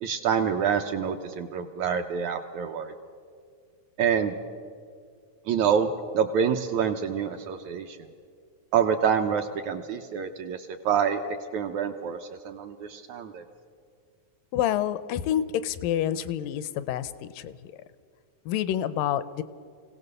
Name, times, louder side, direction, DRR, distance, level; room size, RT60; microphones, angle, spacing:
voice 1, 0.0-2.9 4.0-4.3 5.5-5.9 6.1-8.0 8.7-11.2 11.5-13.4, right 7 dB, 75° right, 4 dB, 1.8 m, -27 dB
voice 2, 14.5-17.7 18.5-19.4, left 11 dB, 80° left, 14 dB, 2.3 m, -28 dB
24.0 x 17.0 x 6.7 m, 2.2 s
omnidirectional pair, 4.0 m